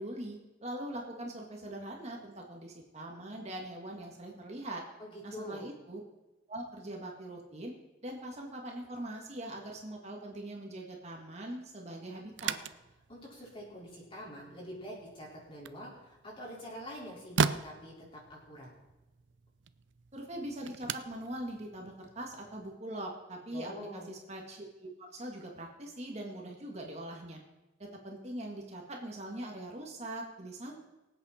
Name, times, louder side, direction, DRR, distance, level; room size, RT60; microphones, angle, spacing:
voice 1, 0.0-4.8 5.2-6.0 6.5-7.7 8.0-12.5 20.1-27.4 27.8-30.8, right 1 dB, 35° right, 0 dB, 1.9 m, -42 dB
voice 2, 5.0-5.6 13.1-18.7 23.5-24.1, equal, 30° left, -5 dB, 4.8 m, -45 dB
sound 1, 12.3-22.8, right 5 dB, 85° right, 0.6 m, -39 dB
24.5 x 8.2 x 4.4 m, 1.1 s
head